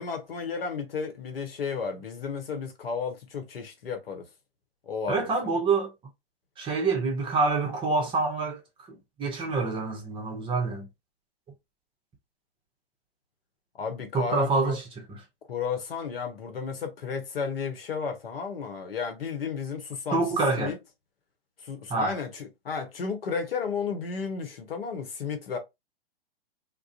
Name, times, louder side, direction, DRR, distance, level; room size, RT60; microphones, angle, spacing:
voice 1, 0.0-4.3 4.9-5.3 13.8-14.8 15.5-20.2 20.6-20.8 21.6-25.6, left 5 dB, 70° left, 0.9 m, -33 dB
voice 2, 5.1-5.9 6.6-8.6 8.9-10.9 14.1-14.8 20.1-20.7 21.9-22.2, right 3 dB, 15° right, 0.7 m, -26 dB
2.4 x 2.1 x 2.7 m
figure-of-eight pair, 110°, 30 cm